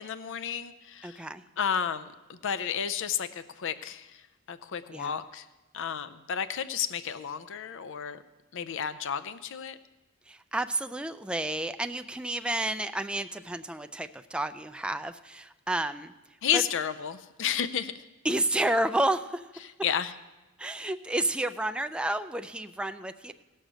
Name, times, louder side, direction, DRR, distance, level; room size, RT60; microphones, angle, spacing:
voice 1, 0.0-1.2 1.6-4.2 4.5-5.5 5.7-8.2 8.5-9.8 16.4-18.0 19.8-20.1, left 8 dB, 60° left, 14 dB, 0.5 m, -32 dB
voice 2, 1.0-1.5 4.9-5.2 10.3-16.1 16.5-16.6 18.2-19.7 20.6-23.3, right 1 dB, 5° right, 8 dB, 0.3 m, -31 dB
17.5 x 6.5 x 6.2 m, 1.1 s
head